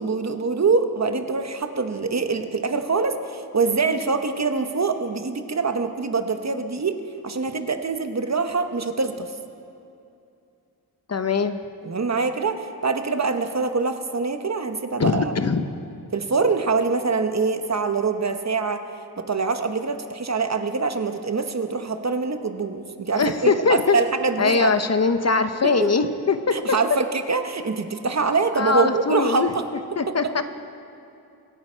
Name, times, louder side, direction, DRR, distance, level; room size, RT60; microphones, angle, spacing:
voice 1, 0.0-7.0 7.2-9.3 11.8-15.4 16.1-18.8 19.2-24.7 25.6-25.9 26.5-29.6 30.1-30.4, right 4 dB, 45° right, 8 dB, 0.9 m, -24 dB
voice 2, 11.1-11.6 15.0-15.7 23.1-24.0 24.4-26.8 28.6-29.5 30.0-30.4, left 4 dB, 40° left, 9 dB, 0.7 m, -21 dB
24.0 x 9.5 x 4.4 m, 2.6 s
wide cardioid pair, 85°, 38 cm